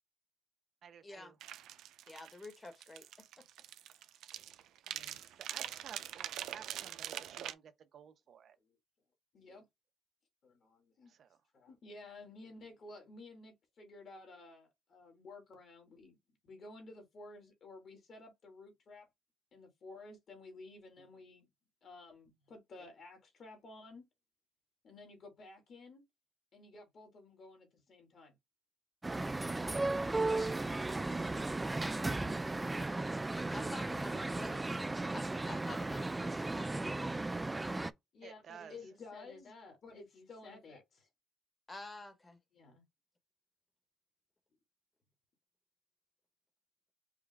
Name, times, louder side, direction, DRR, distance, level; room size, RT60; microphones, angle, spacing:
voice 1, 0.8-1.4 5.4-8.6 11.1-11.4 38.2-38.8, right 8 dB, 60° right, 0.9 m, -54 dB
sound 1, 1.4-7.5, right 11 dB, 85° right, 0.5 m, -44 dB
voice 2, 2.1-3.1 3.4-3.5 33.5-34.5 35.1-37.2 37.6-37.9 41.7-42.4, left 2 dB, 25° left, 1.4 m, -49 dB
voice 3, 4.9-5.2 8.6-8.8 9.3-9.7 10.4-11.1 11.5-16.2 16.4-19.1 19.5-21.5 21.8-24.1 24.8-26.0 26.5-28.4 34.1-34.7 38.1-41.1 42.5-42.8, left 3 dB, 55° left, 2.1 m, -53 dB
sound 2, 29.0-37.9, right 2 dB, 15° right, 0.4 m, -35 dB
5.0 x 2.4 x 3.5 m
cardioid pair, 90°, 0 cm